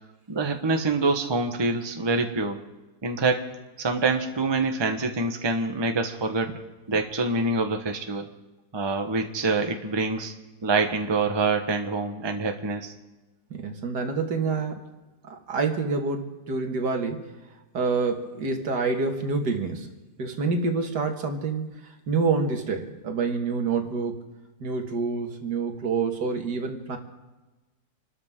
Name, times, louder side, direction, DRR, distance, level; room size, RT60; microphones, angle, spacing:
voice 1, 0.3-2.6 3.0-3.4 3.8-6.5 6.9-8.3 8.7-10.3 10.6-12.9, right 3 dB, 20° right, 5 dB, 1.0 m, -25 dB
voice 2, 13.5-14.8 15.3-17.3 17.7-19.9 20.2-21.7 22.1-24.2 24.6-27.0, right 4 dB, 85° right, 4 dB, 2.3 m, -27 dB
28.0 x 13.0 x 3.7 m, 1.1 s
omnidirectional pair, 1.8 m